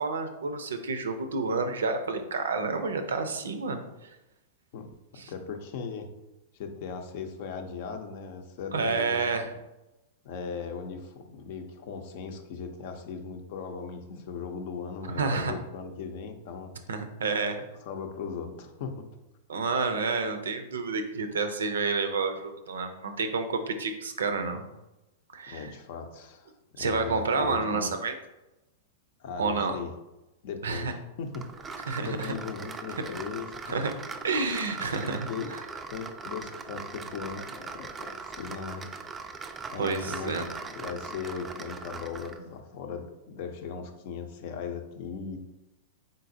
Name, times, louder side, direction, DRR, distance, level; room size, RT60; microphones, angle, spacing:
voice 1, 0.0-4.2 5.2-5.3 8.7-9.5 15.1-15.5 16.9-17.6 19.5-24.6 25.3-25.7 26.8-28.1 29.4-29.8 30.6-30.9 31.9-32.3 33.7-33.9 34.2-35.6 39.8-40.4, right 4 dB, 75° right, 8 dB, 0.5 m, -29 dB
voice 2, 4.7-6.1 6.5-9.3 10.2-16.8 17.8-19.1 25.5-28.0 29.2-29.9 30.4-33.8 35.0-35.5 35.9-38.9 39.7-45.4, left 5 dB, 55° left, 6 dB, 0.6 m, -38 dB
sound 1, 31.3-42.4, right 4 dB, 20° right, 0.4 m, -40 dB
4.1 x 3.8 x 2.6 m, 0.97 s
figure-of-eight pair, 100°, 0 cm